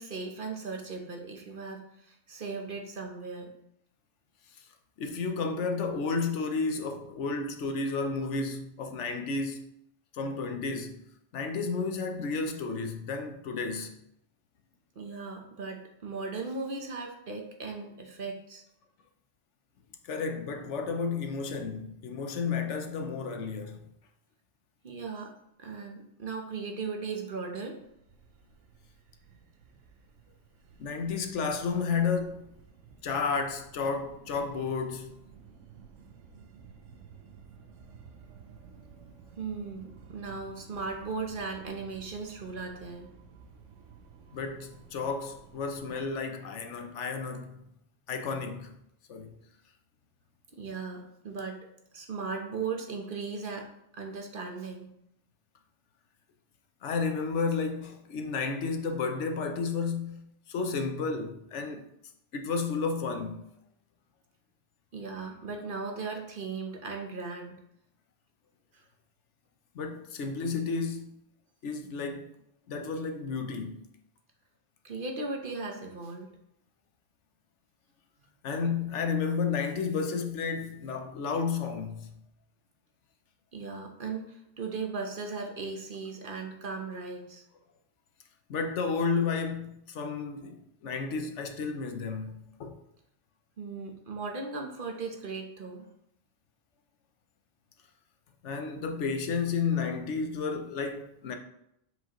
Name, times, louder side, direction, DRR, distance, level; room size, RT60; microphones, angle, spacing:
voice 1, 0.0-3.5 15.0-18.6 24.8-25.3 25.6-27.8 39.4-43.1 50.6-51.6 51.9-54.9 64.9-67.6 68.7-68.8 74.8-76.3 83.5-87.4 93.6-95.9, right 4 dB, 50° right, 1.0 m, -37 dB
voice 2, 5.0-9.6 10.1-11.0 11.3-13.9 20.0-23.8 30.8-32.4 33.0-35.2 44.3-47.6 48.1-48.7 49.1-49.3 56.8-61.9 62.3-63.4 69.7-71.2 71.6-72.2 72.7-73.8 78.4-82.1 88.5-90.5 90.8-92.8 98.4-101.3, left 4 dB, 75° left, 1.0 m, -32 dB
sound 1, 27.8-46.2, right 6 dB, 85° right, 1.0 m, -54 dB
7.4 x 5.0 x 3.0 m
omnidirectional pair, 1.2 m